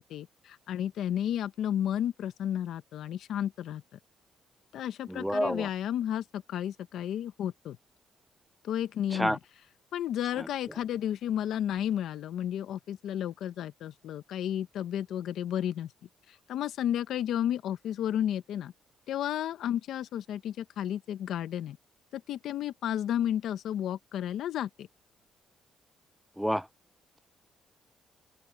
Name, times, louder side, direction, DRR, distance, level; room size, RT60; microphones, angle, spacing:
voice 1, 0.0-3.8 4.7-7.8 8.6-9.4 9.9-15.9 16.3-18.7 19.1-21.8 22.1-24.9, left 10 dB, 80° left, 0.9 m, -32 dB
voice 2, 5.1-5.7 9.1-9.4 10.4-10.5 26.4-26.7, equal, ahead, 0.5 m, -29 dB
open air
cardioid pair, 90°, 0 cm